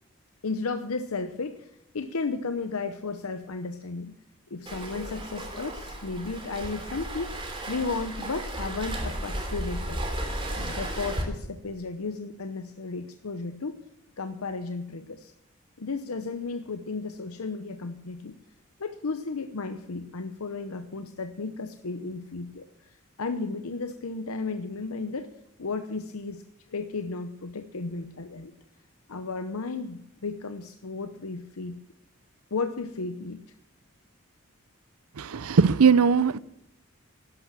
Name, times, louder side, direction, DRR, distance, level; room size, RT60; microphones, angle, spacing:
voice 1, 0.4-4.1 4.5-7.4 7.7-10.0 10.6-13.8 14.2-15.3 15.8-18.3 18.8-25.3 25.6-26.4 26.7-28.5 29.1-31.8 32.5-33.4, left 4 dB, 90° left, 0.8 m, -34 dB
Waves surf, 4.7-11.2, right 1 dB, 25° right, 3.1 m, -34 dB
voice 2, 35.2-36.4, right 5 dB, 90° right, 0.6 m, -20 dB
11.5 x 11.5 x 7.5 m
head